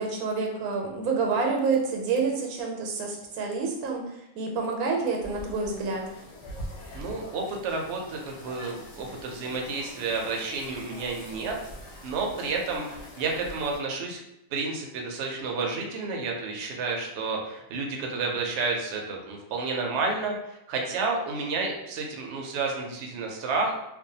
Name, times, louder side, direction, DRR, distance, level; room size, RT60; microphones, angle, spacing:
voice 1, 0.0-4.0 4.4-6.1, right 4 dB, 90° right, 1 dB, 1.1 m, -28 dB
sound 1, 5.2-13.8, left 1 dB, 65° left, 0.9 m, -43 dB
voice 2, 6.9-11.6 12.0-14.2 14.5-23.7, right 3 dB, 65° right, 0 dB, 0.7 m, -30 dB
2.5 x 2.1 x 2.7 m, 0.86 s
omnidirectional pair, 1.5 m